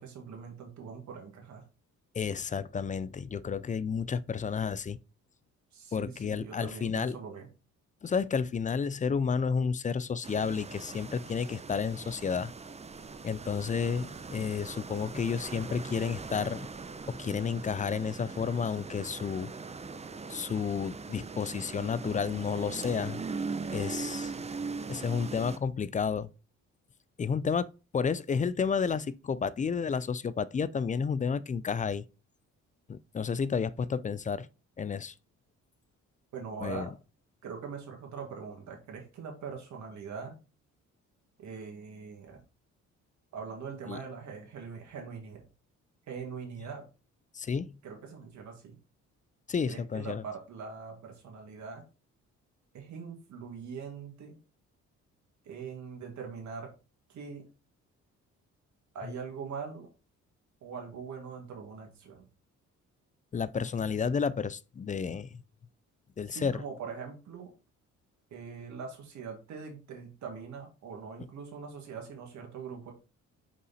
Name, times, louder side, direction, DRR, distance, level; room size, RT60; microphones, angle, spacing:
voice 1, 0.0-1.6 5.7-7.5 36.3-36.9 37.4-40.4 41.4-42.4 43.3-45.4 46.1-46.8 47.8-48.8 49.7-51.8 52.7-54.4 55.4-56.7 57.1-57.4 58.9-59.9 60.6-62.3 66.3-67.5 68.3-72.9, right 5 dB, 70° right, 2.3 m, -42 dB
voice 2, 2.1-5.0 5.9-7.2 8.0-12.5 13.2-16.7 17.1-19.5 20.3-23.2 23.7-24.3 24.9-26.3 27.2-32.0 32.9-34.5 34.8-35.1 36.6-36.9 43.9-44.0 47.3-47.7 49.5-50.2 63.3-65.4 66.2-66.6, left 6 dB, 25° left, 0.4 m, -31 dB
sound 1, 10.2-25.6, right 4 dB, 20° right, 0.6 m, -40 dB
5.5 x 4.9 x 4.1 m
cardioid pair, 90°, 30 cm